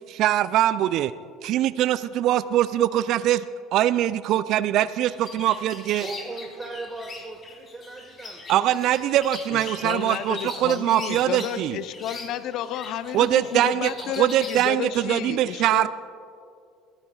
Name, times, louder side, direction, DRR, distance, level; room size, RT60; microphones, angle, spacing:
voice 1, 0.1-1.1 1.4-3.4 3.7-6.1 8.5-11.8 13.1-13.9 14.2-15.9, right 12 dB, 55° right, 15 dB, 0.3 m, -22 dB
sound 1, 5.1-14.7, left 3 dB, 35° left, 3.2 m, -41 dB
voice 2, 6.0-8.6 10.3-10.4, right 3 dB, 20° right, 1 dB, 1.3 m, -38 dB
voice 3, 9.5-15.9, left 11 dB, 55° left, 13 dB, 0.6 m, -32 dB
21.5 x 15.0 x 2.3 m, 2.4 s
hypercardioid pair, 65°, 0 cm